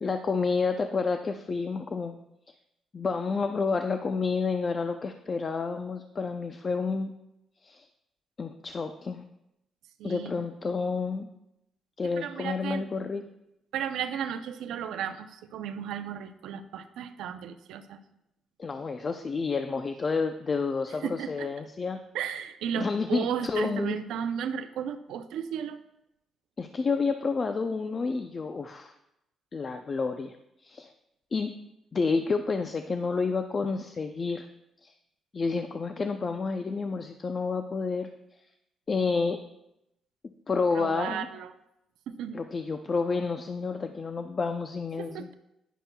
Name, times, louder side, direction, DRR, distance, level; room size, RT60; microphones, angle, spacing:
voice 1, 0.0-2.1 2.9-7.1 7.6-7.9 8.4-9.3 10.0-11.3 12.0-13.2 18.6-22.0 22.7-24.0 26.6-28.9 29.5-30.4 30.6-30.9 31.3-31.5 31.9-34.5 34.8-34.9 35.3-38.1 38.9-39.4 40.5-41.3 42.3-45.3, left 4 dB, 40° left, 7 dB, 0.5 m, -29 dB
voice 2, 10.0-10.5 12.2-12.9 13.7-18.0 21.0-21.5 22.1-25.8 40.7-41.5 42.1-42.4 45.0-45.3, right 8 dB, 85° right, 9 dB, 0.5 m, -34 dB
10.0 x 10.0 x 2.3 m, 0.85 s
cardioid pair, 90°, 0 cm